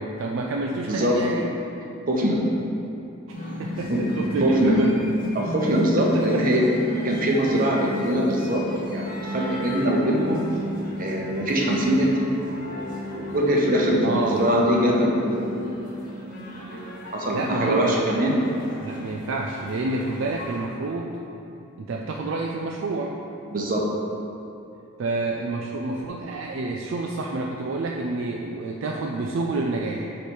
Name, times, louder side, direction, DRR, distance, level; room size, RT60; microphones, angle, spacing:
voice 1, 0.0-1.5 3.3-5.0 6.0-6.6 14.0-14.4 17.3-18.0 18.8-21.2 21.8-23.2 25.0-30.1, right 2 dB, 65° right, 0 dB, 0.3 m, -28 dB
voice 2, 0.9-1.2 2.1-2.4 3.9-4.0 4.4-4.8 5.3-6.6 6.9-8.6 8.9-10.5 11.0-12.1 13.1-15.9 16.7-18.4 23.5-23.8, equal, 40° right, -1 dB, 0.8 m, -23 dB
sound 1, 3.3-20.7, equal, 45° left, 1.2 m, -34 dB
6.8 x 3.2 x 4.4 m, 2.7 s
head